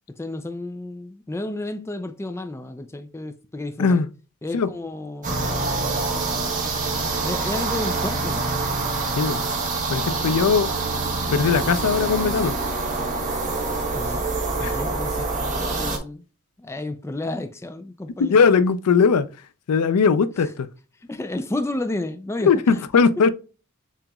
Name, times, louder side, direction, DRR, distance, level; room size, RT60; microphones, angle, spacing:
voice 1, 0.2-4.0 4.4-5.5 7.2-8.5 13.9-14.2 14.6-16.3 16.6-18.3 21.1-22.5, left 2 dB, 10° left, 0.4 m, -31 dB
sound 1, 5.2-16.0, right 3 dB, 35° right, 1.3 m, -26 dB
voice 2, 9.9-10.7 11.3-12.6 14.6-14.8 18.2-19.3 19.7-20.7 22.4-23.3, left 5 dB, 85° left, 0.4 m, -19 dB
7.2 x 2.9 x 2.3 m
head